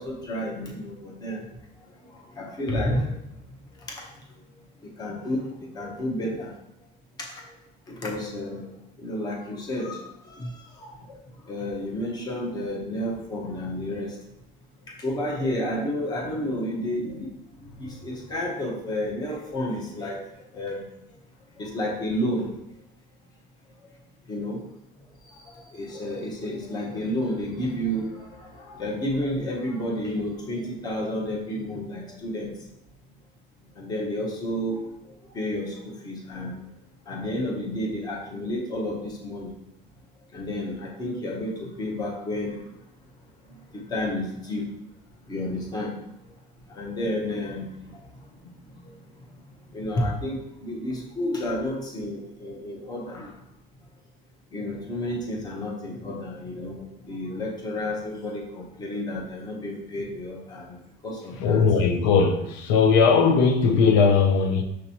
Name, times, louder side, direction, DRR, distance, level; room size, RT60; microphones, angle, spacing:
voice 1, 0.0-1.4 2.1-3.1 4.0-4.1 5.0-6.5 7.3-7.4 8.0-8.7 9.0-10.5 10.8-11.0 11.5-14.1 14.9-17.3 17.8-20.2 20.5-20.8 21.6-22.5 24.3-24.6 25.7-32.5 33.8-34.8 35.3-36.6 37.1-39.5 40.3-42.6 43.7-44.7 45.3-45.9 46.7-48.0 48.9-49.0 49.7-53.3 54.5-60.8 61.0-61.6, left 1 dB, 20° left, 0.7 m, -31 dB
voice 2, 61.4-64.6, left 5 dB, 80° left, 0.5 m, -19 dB
6.2 x 2.9 x 2.8 m
cardioid pair, 175°, 21 cm